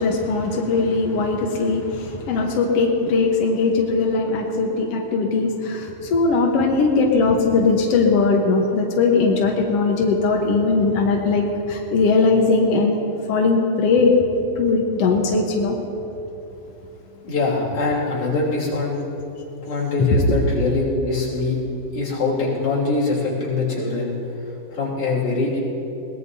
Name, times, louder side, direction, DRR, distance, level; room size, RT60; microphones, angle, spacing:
voice 1, 0.0-13.0 13.3-14.1 14.6-15.8 20.0-20.1, left 4 dB, 65° left, 0 dB, 1.5 m, -19 dB
voice 2, 17.1-19.0 19.7-21.6 21.9-24.1 24.7-25.6, left 3 dB, 40° left, -6 dB, 4.1 m, -23 dB
22.0 x 19.5 x 2.7 m, 3.0 s
omnidirectional pair, 4.2 m